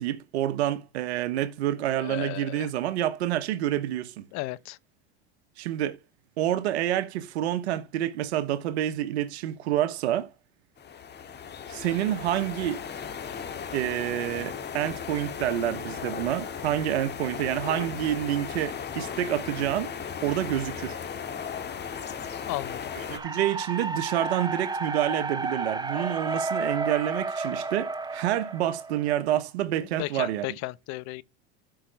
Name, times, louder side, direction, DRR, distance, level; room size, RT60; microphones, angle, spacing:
voice 1, 0.0-4.2 5.6-6.0 6.4-10.3 11.7-12.8 13.7-19.9 20.2-21.0 23.1-30.5, right 12 dB, 90° right, 1.1 m, -28 dB
voice 2, 2.0-2.7 4.3-4.8 22.5-22.9 30.0-31.2, left 19 dB, 60° left, 0.8 m, -34 dB
sound 1, 10.8-23.2, left 7 dB, 35° left, 2.0 m, -36 dB
sound 2, 23.1-29.2, right 3 dB, 15° right, 1.2 m, -32 dB
12.5 x 5.8 x 3.3 m
supercardioid pair, 105°, 32 cm